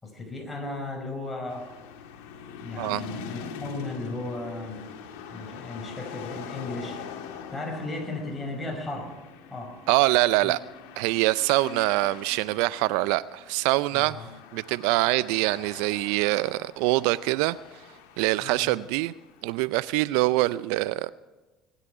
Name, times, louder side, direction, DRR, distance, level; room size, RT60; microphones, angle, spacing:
voice 1, 0.0-1.7 2.6-4.8 5.3-7.0 7.5-9.2 9.5-9.8 10.4-10.5 13.9-14.3 18.4-18.8, left 2 dB, 15° left, 1 dB, 5.2 m, -35 dB
sound 1, 1.5-19.9, left 7 dB, 75° left, 1.7 m, -44 dB
voice 2, 9.9-10.6 11.0-14.2 14.5-17.6 18.2-19.1 19.4-21.1, right 19 dB, 75° right, 18 dB, 0.4 m, -24 dB
19.5 x 11.0 x 4.9 m, 1.2 s
hypercardioid pair, 80°, 0 cm